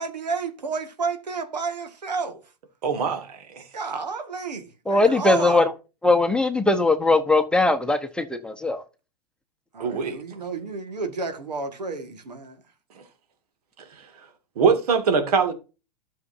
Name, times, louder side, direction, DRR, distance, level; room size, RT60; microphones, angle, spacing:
voice 1, 0.0-2.4 3.7-5.6 9.7-12.6, right 4 dB, 90° right, 1.8 m, -31 dB
voice 2, 2.8-3.6 9.8-10.2 14.6-15.5, right 5 dB, 65° right, 2.3 m, -22 dB
voice 3, 4.9-5.7 6.0-8.8, left 2 dB, 5° left, 0.9 m, -20 dB
12.5 x 6.7 x 2.7 m
hypercardioid pair, 110°, 21 cm